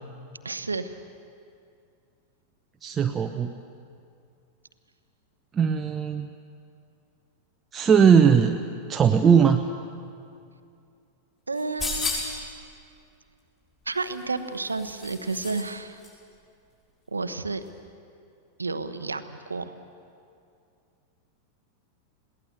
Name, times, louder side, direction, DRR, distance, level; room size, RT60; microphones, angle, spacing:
voice 1, 0.4-0.9 11.5-12.7 13.9-16.0 17.1-17.6 18.6-19.7, right 3 dB, 80° right, 10 dB, 1.0 m, -31 dB
voice 2, 2.8-3.5 5.5-6.3 7.7-8.6 8.9-9.7, right 7 dB, 20° right, 5 dB, 0.8 m, -19 dB
sound 1, 11.5-12.5 14.0-15.7 16.0-16.1, left 3 dB, 25° left, 6.8 m, -33 dB
21.5 x 18.0 x 7.9 m, 2.4 s
figure-of-eight pair, 90°, 0 cm